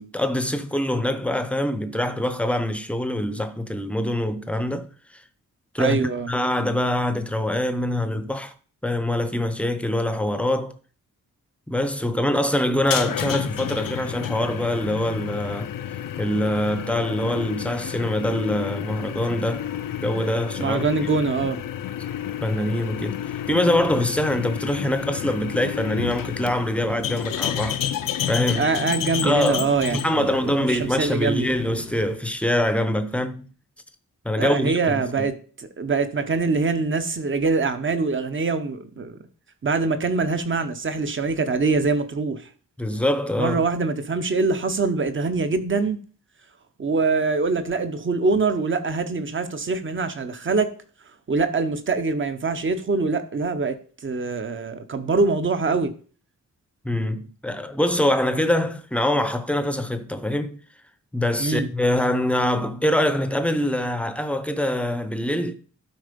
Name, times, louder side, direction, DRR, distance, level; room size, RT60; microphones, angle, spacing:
voice 1, 0.0-4.9 5.7-8.5 8.8-10.7 11.7-15.7 16.2-19.7 20.0-20.8 22.4-23.2 23.5-27.8 28.3-28.7 29.2-33.5 34.2-35.3 42.8-43.6 56.8-60.6 61.1-65.5, left 1 dB, 5° left, 0.7 m, -24 dB
voice 2, 5.8-6.3 20.6-21.6 28.6-31.5 34.4-39.2 39.6-42.4 43.3-46.0 46.8-50.7 51.3-53.8 54.0-55.9 61.4-61.7, right 4 dB, 40° right, 1.0 m, -24 dB
sound 1, 12.8-32.2, left 10 dB, 85° left, 0.7 m, -31 dB
12.5 x 4.6 x 5.2 m
wide cardioid pair, 175°, 32 cm